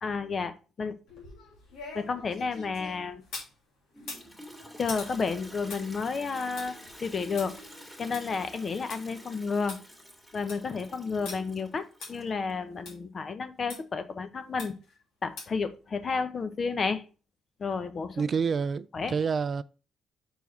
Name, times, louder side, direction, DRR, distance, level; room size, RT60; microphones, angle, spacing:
voice 1, 0.0-1.0 1.9-3.2 4.8-6.8 7.0-7.6 8.0-9.8 10.3-14.8 15.2-17.0 17.6-18.3 18.9-19.2, left 4 dB, 45° left, 0.9 m, -31 dB
sound 1, 1.1-3.5 4.0-9.0 9.4-9.5 9.7-9.8 10.2-10.7 11.3-11.4 12.0-12.1 12.9-13.0 13.7-13.8 14.6-14.9 15.4-15.7 16.1-16.2, left 3 dB, 85° left, 2.8 m, -44 dB
Toilet flush, 3.9-12.5, equal, 10° left, 2.2 m, -48 dB
voice 2, 18.2-19.6, right 5 dB, 45° right, 0.3 m, -28 dB
6.0 x 4.6 x 4.0 m
cardioid pair, 90°, 0 cm